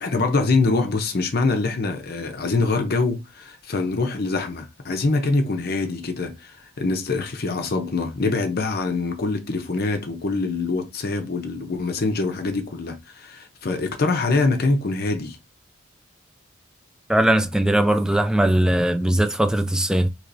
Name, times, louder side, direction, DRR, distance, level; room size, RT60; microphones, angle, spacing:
voice 1, 0.0-15.4, left 3 dB, 50° left, 0.6 m, -24 dB
voice 2, 17.1-20.1, right 1 dB, 5° right, 0.4 m, -19 dB
4.5 x 2.9 x 2.6 m
head